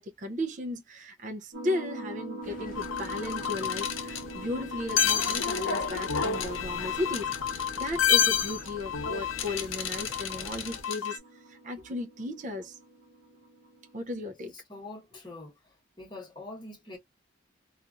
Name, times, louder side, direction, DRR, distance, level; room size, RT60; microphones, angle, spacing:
voice 1, 0.0-11.2 11.5-12.8 13.9-14.5, left 1 dB, 40° right, 0.5 m, -35 dB
sound 1, 1.5-13.9, right 2 dB, 60° right, 0.8 m, -45 dB
sound 2, 2.4-10.8, left 2 dB, 45° left, 0.9 m, -47 dB
sound 3, 2.8-11.2, left 8 dB, 75° left, 0.6 m, -29 dB
voice 2, 14.5-17.0, left 2 dB, 25° left, 1.2 m, -44 dB
2.9 x 2.4 x 2.4 m
head